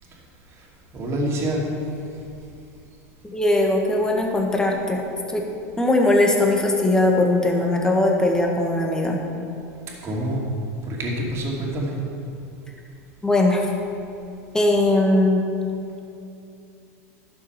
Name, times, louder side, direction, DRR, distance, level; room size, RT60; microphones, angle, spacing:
voice 1, 0.9-1.6 10.0-10.5 10.9-11.9, right 1 dB, 35° right, -2 dB, 2.6 m, -26 dB
voice 2, 3.2-5.4 5.8-9.2 13.2-13.7 14.5-15.4, left 2 dB, 10° left, 1 dB, 1.5 m, -20 dB
11.0 x 7.0 x 5.9 m, 2.6 s
supercardioid pair, 120°, 8 cm